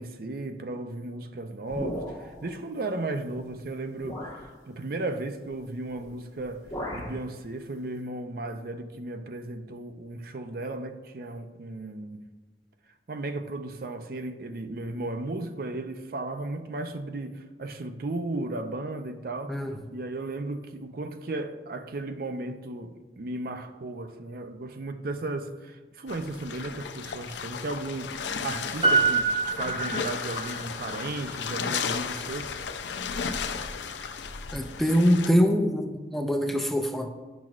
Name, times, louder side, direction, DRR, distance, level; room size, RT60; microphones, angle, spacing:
voice 1, 0.0-4.2 4.7-6.7 6.9-12.2 13.1-19.6 19.9-32.5 34.0-34.2, right 2 dB, 55° right, 0.5 m, -35 dB
sound 1, 1.7-2.5 3.4-3.5 4.0-4.5 5.9-6.1 6.4-7.2, equal, 20° left, 1.4 m, -36 dB
sound 2, 26.1-35.3, left 6 dB, 85° left, 0.5 m, -34 dB
Piano, 28.8-30.6 30.9-31.0, right 4 dB, 35° right, 2.3 m, -25 dB
voice 2, 34.5-37.1, equal, ahead, 0.4 m, -24 dB
10.5 x 6.1 x 2.4 m
head